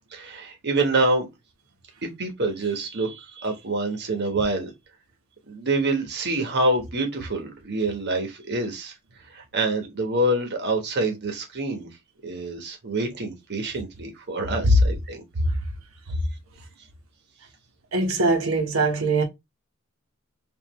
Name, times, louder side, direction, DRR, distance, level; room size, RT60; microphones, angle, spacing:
voice 1, 0.1-1.3 2.2-4.7 5.5-11.9 12.2-15.2, right 2 dB, 55° right, 1.1 m, -26 dB
voice 2, 17.9-19.2, right 3 dB, 80° right, 1.2 m, -22 dB
5.4 x 2.6 x 3.0 m
head